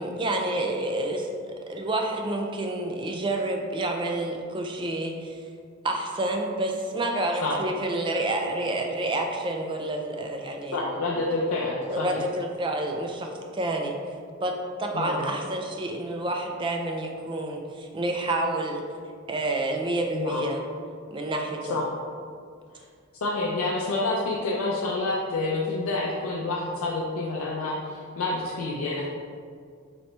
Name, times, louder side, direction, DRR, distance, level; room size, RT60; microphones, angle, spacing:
voice 1, 0.0-5.4 5.8-10.8 11.9-14.0 14.4-18.8 19.3-20.6 21.1-21.8, right 1 dB, 25° right, 2 dB, 0.3 m, -29 dB
voice 2, 10.7-12.2 14.9-15.3 20.1-20.4 21.7-21.8 22.7-22.8 23.2-29.1, left 2 dB, 85° left, -4 dB, 0.5 m, -28 dB
4.2 x 2.9 x 3.2 m, 2.1 s
head